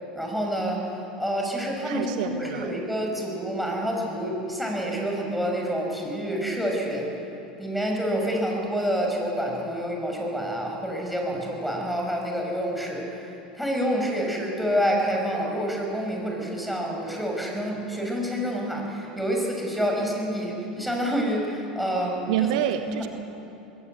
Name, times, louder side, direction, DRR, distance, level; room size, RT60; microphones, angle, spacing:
voice 1, 0.1-0.9 1.2-7.1 7.6-13.3 13.6-22.5 22.9-23.1, equal, ahead, -1 dB, 6.5 m, -28 dB
voice 2, 1.8-2.7 22.3-23.1, right 11 dB, 65° right, 8 dB, 1.1 m, -27 dB
20.5 x 17.0 x 8.2 m, 2.9 s
hypercardioid pair, 85°, 4 cm